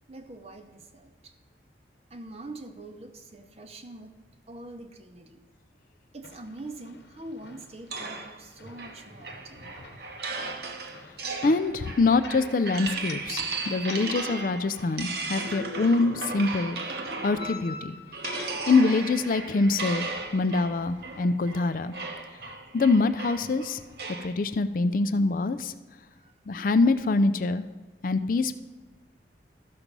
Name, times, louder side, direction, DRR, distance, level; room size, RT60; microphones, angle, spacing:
voice 1, 0.1-1.3 2.1-4.1 4.5-5.4 6.1-9.7 26.2-26.3, right 2 dB, 35° right, 7 dB, 0.7 m, -44 dB
sound 1, 6.2-21.2, left 4 dB, 65° left, 1.0 m, -48 dB
sound 2, 7.9-17.7 18.1-24.3, right 3 dB, 60° right, 0.9 m, -36 dB
voice 2, 11.4-16.8 17.2-18.0 18.7-21.9 22.7-23.8 24.2-25.7 26.5-27.6 28.0-28.6, left 3 dB, 45° left, 11 dB, 0.4 m, -24 dB
13.0 x 6.0 x 5.3 m, 1.2 s
head